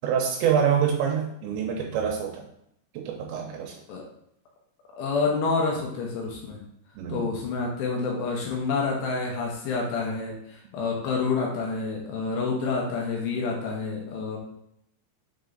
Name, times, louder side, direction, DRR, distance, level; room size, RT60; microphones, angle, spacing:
voice 1, 0.0-2.5 2.9-3.8 7.0-7.3, right 8 dB, 80° right, 0 dB, 2.9 m, -26 dB
voice 2, 5.0-6.6 7.1-14.4, left 4 dB, 75° left, -1 dB, 3.0 m, -28 dB
7.0 x 3.6 x 3.8 m, 0.74 s
omnidirectional pair, 5.3 m